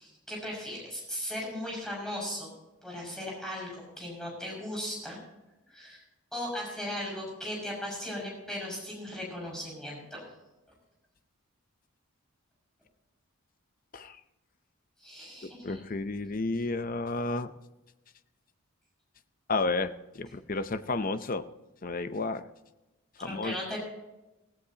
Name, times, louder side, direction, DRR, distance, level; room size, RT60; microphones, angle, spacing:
voice 1, 0.0-2.5 2.8-5.2 5.7-6.0 6.3-10.3 15.0-15.8 23.2-23.8, left 1 dB, 5° left, -4 dB, 6.2 m, -37 dB
voice 2, 15.4-17.5 19.5-21.5 21.8-22.5 23.2-23.8, left 3 dB, 40° left, 11 dB, 0.6 m, -32 dB
17.0 x 16.5 x 2.9 m, 1.0 s
head